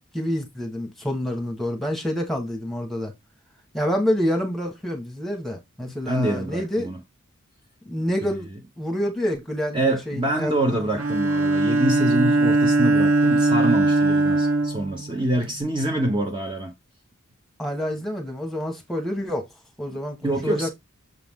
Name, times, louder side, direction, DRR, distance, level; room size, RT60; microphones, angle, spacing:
voice 1, 0.0-3.1 3.7-6.9 7.8-8.5 8.8-10.6 17.6-19.4 19.8-20.7, equal, ahead, 1.6 m, -27 dB
voice 2, 5.8-7.0 9.7-16.7 19.9-20.7, right 1 dB, 25° right, 1.1 m, -26 dB
Bowed string instrument, 11.0-15.6, right 2 dB, 85° right, 1.2 m, -20 dB
7.1 x 3.8 x 3.8 m
head